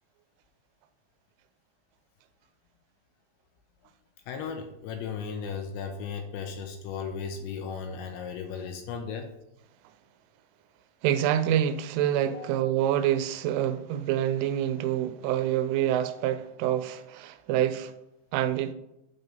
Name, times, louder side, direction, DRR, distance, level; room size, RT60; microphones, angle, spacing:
voice 1, 4.3-9.3 12.3-12.5, left 6 dB, 80° left, 2.7 m, -36 dB
voice 2, 11.0-17.9 18.3-18.7, right 11 dB, 85° right, 3.0 m, -26 dB
9.2 x 4.0 x 5.1 m
omnidirectional pair, 5.6 m